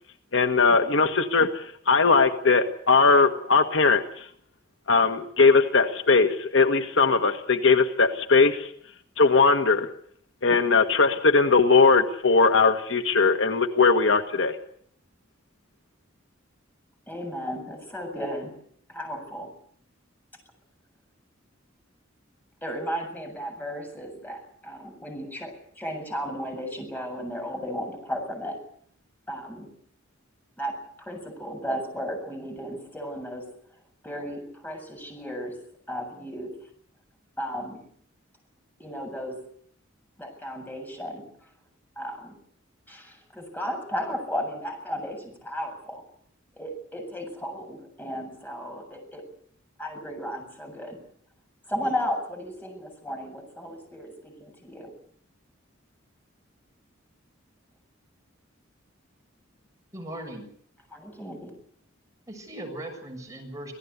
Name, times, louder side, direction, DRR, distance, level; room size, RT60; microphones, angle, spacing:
voice 1, 0.3-4.2 4.9-8.7 9.2-9.9 10.4-14.6, left 4 dB, 65° left, 8 dB, 1.6 m, -20 dB
voice 2, 17.1-18.6 18.9-19.5 22.6-28.6 29.3-29.7 30.6-33.5 34.0-35.6 35.9-36.5 37.4-37.8 38.8-39.4 40.2-41.5 42.0-42.4 42.9-46.0 46.5-49.2 49.8-51.0 51.7-54.9 60.9-61.6, equal, 10° left, 3 dB, 7.5 m, -34 dB
voice 3, 59.9-60.5 62.3-63.7, right 1 dB, 15° right, 2 dB, 7.0 m, -38 dB
26.5 x 17.5 x 8.3 m, 0.63 s
head